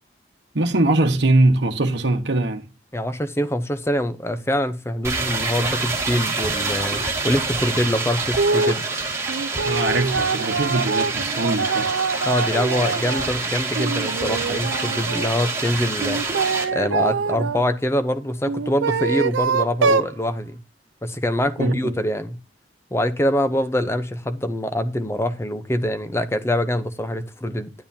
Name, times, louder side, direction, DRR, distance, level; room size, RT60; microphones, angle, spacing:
voice 1, 0.5-2.7 9.6-11.9 21.6-22.0, right 2 dB, 70° right, 1.1 m, -21 dB
voice 2, 2.9-8.8 12.3-16.2 16.7-20.6 21.0-22.4 22.9-27.7, left 1 dB, 15° left, 0.7 m, -24 dB
sound 1, 5.0-16.6, right 3 dB, 15° right, 2.0 m, -27 dB
sound 2, 8.4-8.8 9.3-13.3 13.7-15.3 16.0-17.6 18.4-20.1, right 4 dB, 90° right, 0.5 m, -24 dB
10.5 x 9.4 x 2.8 m
head